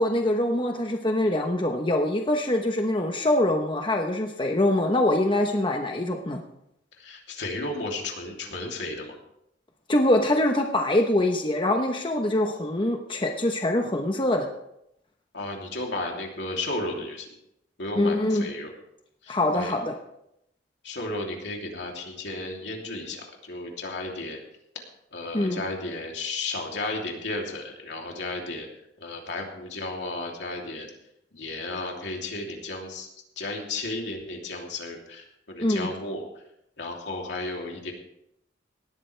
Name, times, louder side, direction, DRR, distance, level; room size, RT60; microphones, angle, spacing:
voice 1, 0.0-6.4 9.9-14.5 18.0-18.5 19.3-20.0 25.3-25.6 35.6-35.9, left 1 dB, 30° left, 3 dB, 1.0 m, -24 dB
voice 2, 7.0-9.2 15.3-17.3 17.8-18.7 19.2-19.8 20.8-24.4 24.7-24.8 25.1-28.7 29.0-30.9 31.3-33.1 33.4-36.3 36.8-37.9, left 2 dB, 75° left, 0 dB, 3.0 m, -33 dB
18.5 x 13.5 x 3.4 m, 0.80 s
head